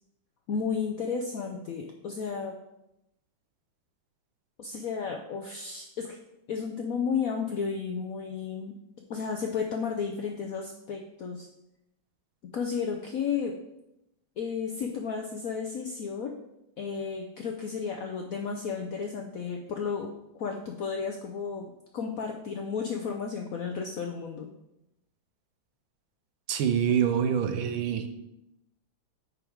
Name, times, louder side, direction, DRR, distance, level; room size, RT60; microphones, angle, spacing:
voice 1, 0.5-2.6 4.6-6.2 6.5-8.7 9.1-11.5 12.4-13.5 14.4-16.4 16.8-20.1 20.4-24.5, left 6 dB, 75° left, 3 dB, 0.8 m, -33 dB
voice 2, 26.5-28.1, right 8 dB, 90° right, 7 dB, 1.5 m, -25 dB
8.8 x 3.6 x 4.6 m, 0.87 s
omnidirectional pair, 2.2 m